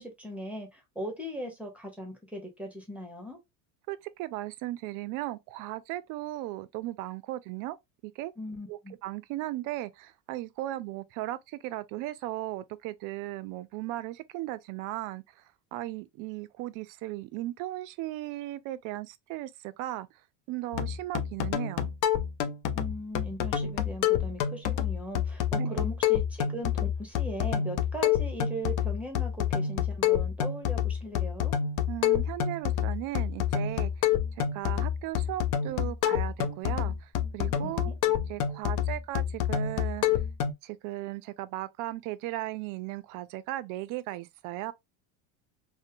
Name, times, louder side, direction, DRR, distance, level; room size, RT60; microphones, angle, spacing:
voice 1, 0.0-3.4 8.4-8.9 22.7-31.5 37.6-37.9, equal, 5° right, 0.8 m, -39 dB
voice 2, 3.9-7.8 8.0-8.3 8.7-15.4 15.7-20.1 20.5-21.9 25.6-25.8 31.9-33.9 34.4-37.9 38.3-40.2 40.6-44.7, right 16 dB, 55° right, 0.4 m, -36 dB
sound 1, 20.7-40.5, left 9 dB, 55° left, 0.5 m, -28 dB
2.7 x 2.1 x 2.5 m
supercardioid pair, 120°, 38 cm